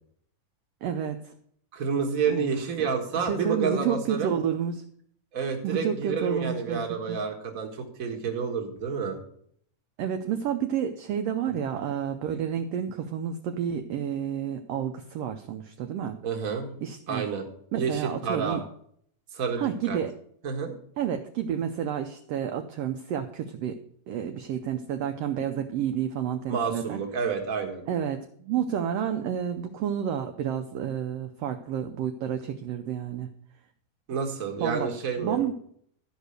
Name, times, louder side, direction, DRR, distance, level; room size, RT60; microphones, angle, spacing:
voice 1, 0.8-1.3 2.3-2.5 2.8-2.9 3.1-4.8 5.6-6.8 7.1-7.2 10.0-16.2 16.8-17.3 17.7-18.6 19.6-20.1 21.0-23.8 24.1-27.0 27.9-33.3 34.6-34.9 35.2-35.5, right 8 dB, 80° right, 6 dB, 1.4 m, -30 dB
voice 2, 1.7-4.3 5.3-9.2 11.6-11.7 16.2-16.8 17.1-17.4 17.7-18.6 19.3-20.0 20.4-20.7 26.5-27.8 34.1-35.4, right 5 dB, 35° right, 2 dB, 1.4 m, -29 dB
12.5 x 5.2 x 6.4 m, 0.64 s
omnidirectional pair, 3.5 m